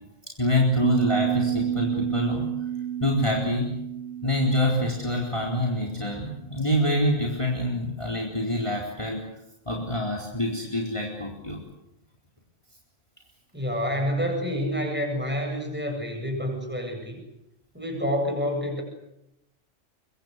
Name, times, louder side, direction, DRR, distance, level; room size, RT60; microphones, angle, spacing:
voice 1, 0.4-2.5 3.0-3.7 4.2-9.2 9.7-11.6, left 1 dB, 25° left, -1 dB, 4.2 m, -26 dB
Piano, 0.8-6.4, right 11 dB, 60° right, 2.2 m, -30 dB
voice 2, 13.5-17.2 17.7-18.8, equal, 10° right, 2 dB, 8.0 m, -28 dB
25.0 x 23.5 x 8.2 m, 0.85 s
omnidirectional pair, 1.3 m